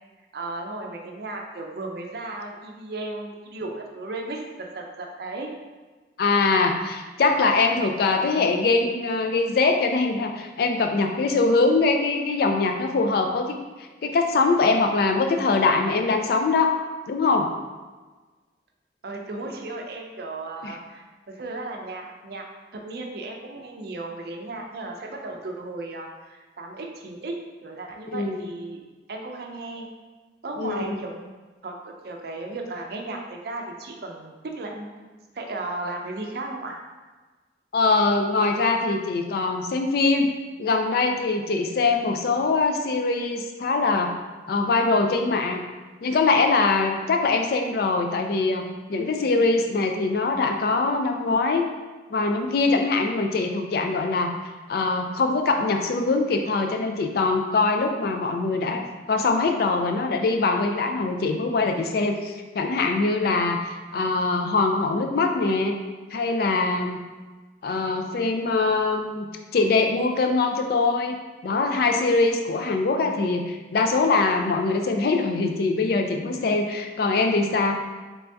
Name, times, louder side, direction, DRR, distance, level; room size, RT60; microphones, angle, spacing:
voice 1, 0.3-5.5 19.0-22.4 22.7-27.4 27.6-28.8 29.1-29.9 30.4-31.3 31.6-35.0 35.3-36.8, right 2 dB, 60° right, 2 dB, 0.5 m, -35 dB
voice 2, 6.2-13.6 14.0-16.7 17.1-17.5 20.6-20.8 28.1-28.5 30.6-31.0 37.7-40.3 40.6-44.1 44.5-45.6 46.0-48.6 48.9-51.7 52.1-54.3 54.7-58.8 59.1-65.8 66.1-67.0 67.6-71.2 71.4-77.7, left 3 dB, 55° left, 4 dB, 0.3 m, -23 dB
3.3 x 2.6 x 3.4 m, 1.3 s
head